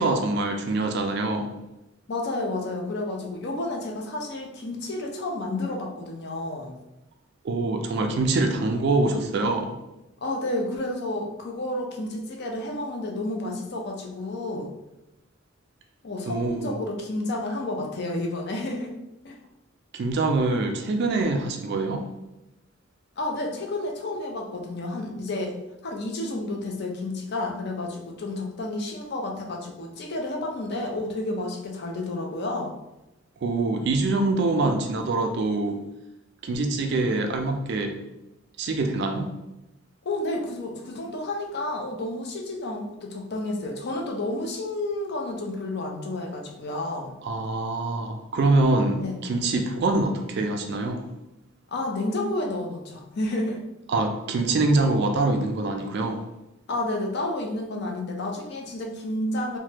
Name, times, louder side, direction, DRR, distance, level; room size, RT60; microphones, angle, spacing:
voice 1, 0.0-1.5 7.4-9.7 16.2-16.8 19.9-22.0 33.4-35.8 36.4-38.0 38.6-39.3 47.2-51.0 53.9-56.2, right 2 dB, 55° right, 5 dB, 0.3 m, -24 dB
voice 2, 2.1-6.7 10.2-14.7 16.0-18.9 19.2-19.4 23.2-25.5 25.8-32.7 40.0-47.1 49.0-49.1 51.7-53.6 56.7-59.6, left 2 dB, 50° left, 1 dB, 0.5 m, -30 dB
3.1 x 2.2 x 2.9 m, 0.93 s
head